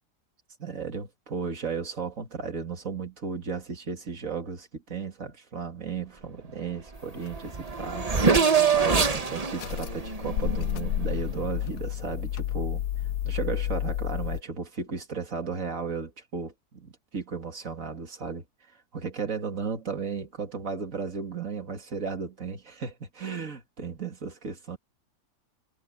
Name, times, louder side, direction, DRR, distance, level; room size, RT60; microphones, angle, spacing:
voice 1, 0.6-12.8 13.2-24.8, right 5 dB, 55° right, 2.7 m, -35 dB
Race car auto racing / Accelerating revving vroom, 7.0-7.1 7.3-11.3, right 5 dB, 25° right, 1.1 m, -25 dB
sound 1, 7.2-7.4 8.3-8.5 9.0-14.4, left 12 dB, 90° left, 1.2 m, -31 dB
omnidirectional pair, 1.7 m